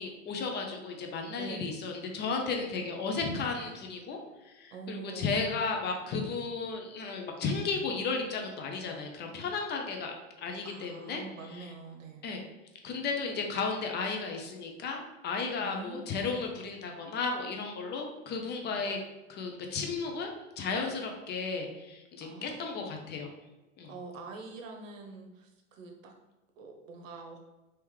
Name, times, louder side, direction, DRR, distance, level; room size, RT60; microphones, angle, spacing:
voice 1, 0.0-11.2 11.6-11.7 12.2-12.4 12.8-19.0 19.3-23.3 23.8-23.9, left 4 dB, 25° left, 2 dB, 0.5 m, -34 dB
voice 2, 1.3-1.8 4.7-5.3 10.6-12.2 15.6-16.4 18.8-18.9 22.2-22.9 23.8-26.1 26.6-27.4, right 4 dB, 85° right, 2 dB, 0.9 m, -45 dB
3.5 x 2.9 x 3.2 m, 1.1 s
hypercardioid pair, 115°, 38 cm